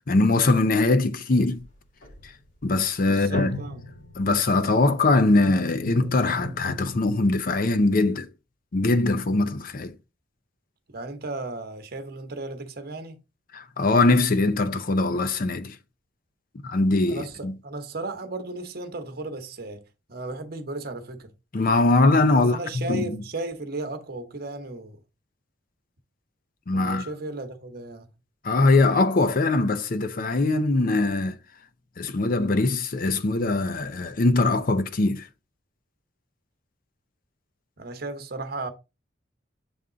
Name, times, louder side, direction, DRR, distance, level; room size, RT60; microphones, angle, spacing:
voice 1, 0.1-1.6 2.6-3.6 4.2-8.3 8.7-9.9 13.5-15.8 16.6-17.5 21.5-23.0 26.7-27.1 28.4-31.4 32.0-35.3, left 2 dB, 50° left, 0.6 m, -22 dB
sound 1, 1.5-7.3, left 2 dB, 85° left, 3.7 m, -37 dB
voice 2, 3.0-3.8 10.9-13.2 17.1-21.3 22.3-25.0 26.7-28.1 37.8-38.7, right 2 dB, 55° right, 1.0 m, -35 dB
7.1 x 3.6 x 3.8 m
head